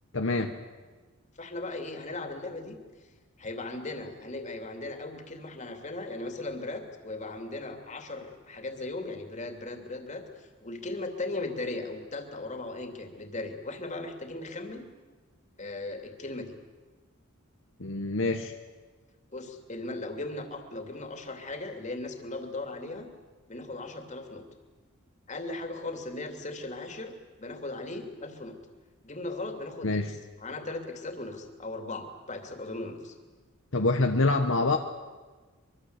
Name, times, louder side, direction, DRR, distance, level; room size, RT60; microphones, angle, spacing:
voice 1, 0.1-0.5 17.8-18.5 29.8-30.1 33.7-34.8, left 2 dB, 65° left, 5 dB, 1.2 m, -26 dB
voice 2, 1.4-2.8 3.4-14.9 15.6-16.5 19.3-23.1 23.5-24.4 25.3-28.6 29.0-33.1, left 2 dB, 35° left, 5 dB, 2.9 m, -38 dB
24.0 x 23.5 x 8.2 m, 1.4 s
head